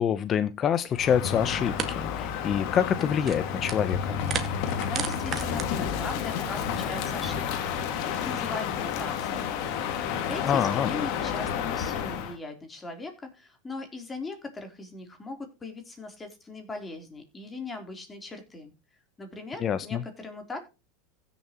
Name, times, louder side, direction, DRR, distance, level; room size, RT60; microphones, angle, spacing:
voice 1, 0.0-4.2 10.5-10.9 19.6-20.0, left 8 dB, 35° left, 12 dB, 0.8 m, -26 dB
Crow, 0.9-12.4, left 8 dB, 60° left, 2.1 m, -31 dB
sound 1, 1.1-1.2 1.8-1.9 2.2-2.5 2.9-3.9 4.2-5.6, right 7 dB, 30° right, 1.9 m, -34 dB
voice 2, 4.9-9.6 10.3-18.7 19.2-20.6, left 3 dB, 15° left, 5 dB, 3.6 m, -39 dB
16.0 x 7.1 x 3.0 m, 0.28 s
supercardioid pair, 115°, 0 cm